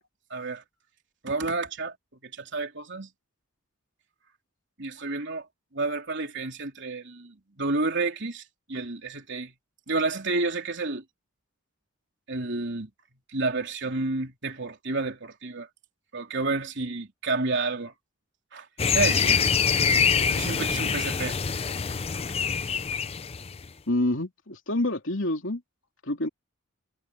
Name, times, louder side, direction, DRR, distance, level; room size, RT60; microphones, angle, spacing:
voice 1, 0.3-0.6 1.2-2.0 2.2-3.1 4.8-5.5 5.7-8.4 8.7-9.5 9.9-11.0 12.3-12.9 13.3-15.7 16.1-17.9 18.5-18.7 18.9-19.4 20.3-21.4, right 3 dB, 55° right, 3.7 m, -30 dB
sound 1, 18.8-23.7, left 6 dB, 30° left, 0.5 m, -25 dB
voice 2, 23.9-25.6 26.0-26.3, left 1 dB, 60° left, 3.4 m, -27 dB
head